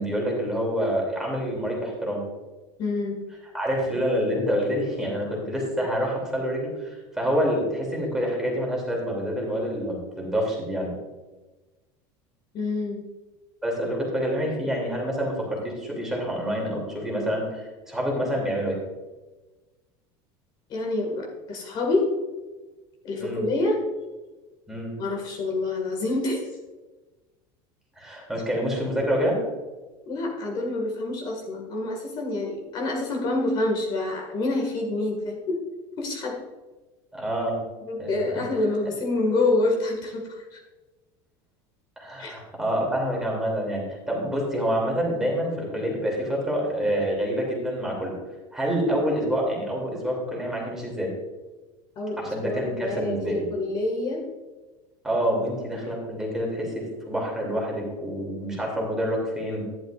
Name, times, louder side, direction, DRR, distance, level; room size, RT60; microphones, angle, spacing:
voice 1, 0.0-2.3 3.5-10.9 13.6-18.8 23.2-23.4 24.7-24.9 28.0-29.4 37.1-37.6 38.0-38.1 42.0-48.1 48.5-51.1 52.2-53.5 55.0-59.7, equal, 5° right, -2 dB, 2.9 m, -27 dB
voice 2, 2.8-3.2 12.5-13.0 20.7-22.1 23.0-23.8 25.0-26.4 30.1-35.6 36.0-36.4 37.9-40.6 42.2-42.4 52.0-54.3, left 2 dB, 35° left, 0 dB, 2.0 m, -27 dB
11.5 x 11.0 x 2.5 m, 1.2 s
cardioid pair, 155°, 12 cm